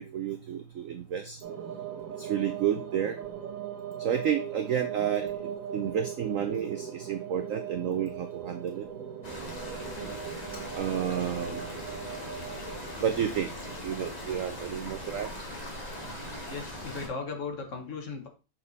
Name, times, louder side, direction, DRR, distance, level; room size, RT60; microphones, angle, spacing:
voice 1, 0.0-1.4 2.2-3.2 4.0-8.9 10.7-11.7 13.0-13.5 13.8-15.3, right 9 dB, 85° right, 8 dB, 0.7 m, -31 dB
sound 1, 1.4-13.9, right 9 dB, 50° right, 1.2 m, -39 dB
sound 2, 9.2-17.1, left 1 dB, 25° left, 1.4 m, -40 dB
voice 2, 16.5-18.3, left 4 dB, 45° left, 4 dB, 1.3 m, -37 dB
6.9 x 4.3 x 4.0 m, 0.32 s
omnidirectional pair, 2.2 m